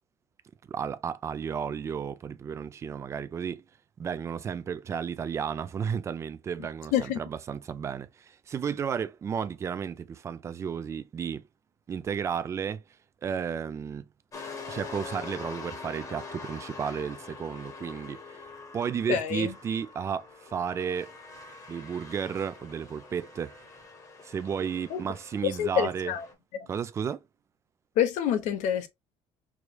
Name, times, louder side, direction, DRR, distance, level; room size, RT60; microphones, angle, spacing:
voice 1, 0.7-3.6 4.0-11.4 11.9-12.8 13.2-14.1 14.7-18.4 18.7-21.1 21.7-23.5 24.2-26.1 26.7-27.2, right 7 dB, 20° right, 0.3 m, -33 dB
sound 1, 14.3-26.3, left 4 dB, 25° left, 1.0 m, -44 dB
voice 2, 19.1-19.5 24.9-25.0 25.6-26.2 28.0-28.9, left 9 dB, 65° left, 0.9 m, -27 dB
4.8 x 3.0 x 2.2 m
cardioid pair, 160°, 13 cm